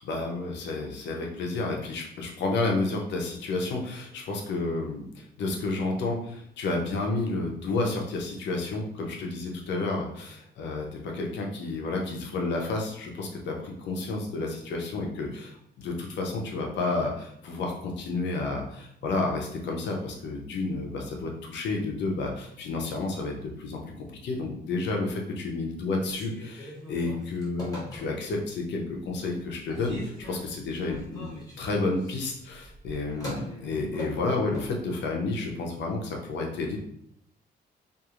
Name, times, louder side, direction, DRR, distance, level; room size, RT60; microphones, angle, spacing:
voice 1, 0.0-23.8 24.2-31.3 31.6-36.8, left 3 dB, 75° left, 1 dB, 0.7 m, -31 dB
Telephone, 26.0-28.4 28.9-29.4 29.7-34.7, equal, 20° left, 1.2 m, -42 dB
2.9 x 2.6 x 2.4 m, 0.72 s
cardioid pair, 150°, 18 cm